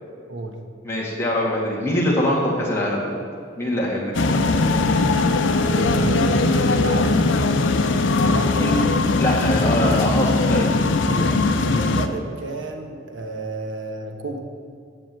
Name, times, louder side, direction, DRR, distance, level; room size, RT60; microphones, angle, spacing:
voice 1, 0.8-3.2 3.6-4.5 8.5-8.7 9.2-10.7, left 1 dB, 15° left, -5 dB, 2.0 m, -23 dB
sound 1, 3.4-3.5 3.9-4.8 5.3-6.3 6.7-6.8 7.1-7.8 8.2-8.3 8.6-9.3 9.7-10.2, equal, 40° right, 2.0 m, -40 dB
sound 2, 4.1-12.1, left 3 dB, 85° left, 0.6 m, -20 dB
Wind instrument woodwind instrument, 4.7-8.9, right 1 dB, 15° right, 1.2 m, -31 dB
voice 2, 5.7-8.7 11.1-11.4 11.6-14.4, right 2 dB, 80° right, 4 dB, 1.2 m, -31 dB
7.8 x 7.4 x 7.6 m, 2.3 s
head